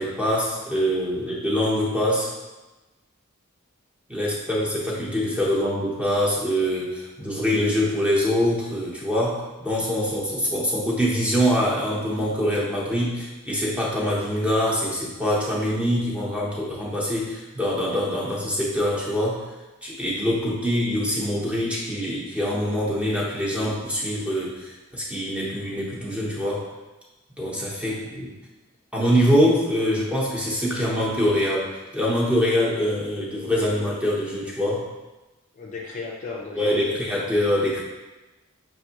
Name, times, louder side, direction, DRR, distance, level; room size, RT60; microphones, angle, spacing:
voice 1, 0.0-2.3 4.1-19.4 19.8-26.6 27.4-28.3 28.9-34.8 36.6-37.8, equal, 5° right, -6 dB, 0.9 m, -24 dB
voice 2, 35.5-37.3, left 3 dB, 35° left, -2 dB, 0.4 m, -36 dB
5.9 x 2.6 x 2.9 m, 1.1 s
head